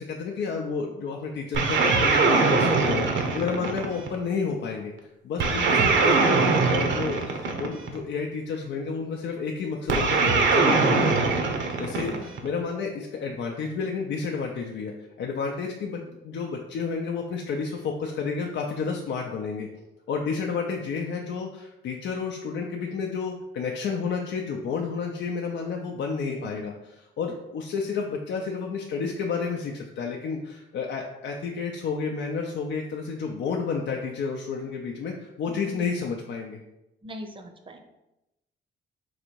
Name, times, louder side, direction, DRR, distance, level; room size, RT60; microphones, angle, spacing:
voice 1, 0.0-3.1 3.3-4.9 5.2-11.2 11.8-14.9 15.2-19.7 20.1-36.6, left 5 dB, 65° left, 0 dB, 0.5 m, -31 dB
sound 1, 1.5-4.2 5.4-8.0 9.9-12.5, right 4 dB, 70° right, 0.8 m, -22 dB
voice 2, 12.0-12.3 26.2-26.7 35.5-36.0 37.0-37.8, equal, 25° right, 6 dB, 0.7 m, -43 dB
4.0 x 2.6 x 4.5 m, 0.92 s
cardioid pair, 90°, 20 cm